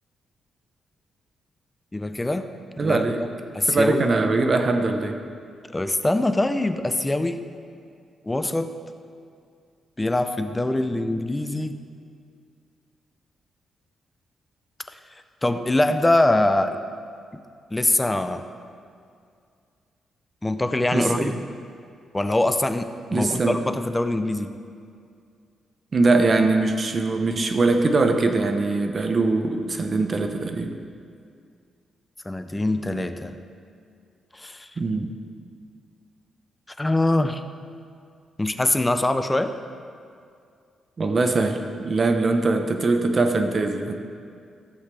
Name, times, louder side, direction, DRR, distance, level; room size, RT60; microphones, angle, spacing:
voice 1, 1.9-2.5 2.8-3.0 3.5-4.0 5.7-7.4 8.3-8.7 10.0-11.8 15.4-16.8 17.7-18.4 20.4-21.4 22.1-24.6 32.3-33.4 34.3-34.7 36.8-37.4 38.4-39.5, left 1 dB, 10° left, 8 dB, 0.4 m, -23 dB
voice 2, 2.8-3.2 3.7-5.2 20.9-21.3 23.1-23.6 25.9-30.7 34.8-35.1 41.0-43.9, right 3 dB, 30° right, 6 dB, 0.7 m, -22 dB
15.0 x 7.9 x 3.3 m, 2.3 s
wide cardioid pair, 170°, 0 cm